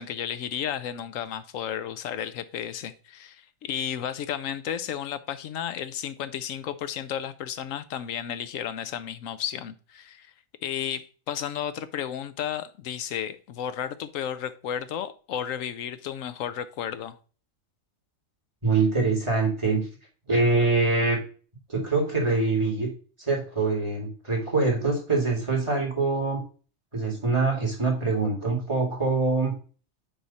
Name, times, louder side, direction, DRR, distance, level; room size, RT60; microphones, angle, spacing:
voice 1, 0.0-10.3 10.6-17.2, left 9 dB, 75° left, 1.1 m, -33 dB
voice 2, 18.6-19.8 20.3-21.2 21.7-22.9 23.3-26.4 26.9-29.5, right 3 dB, 20° right, 2.2 m, -24 dB
9.2 x 3.3 x 4.1 m
omnidirectional pair, 1.4 m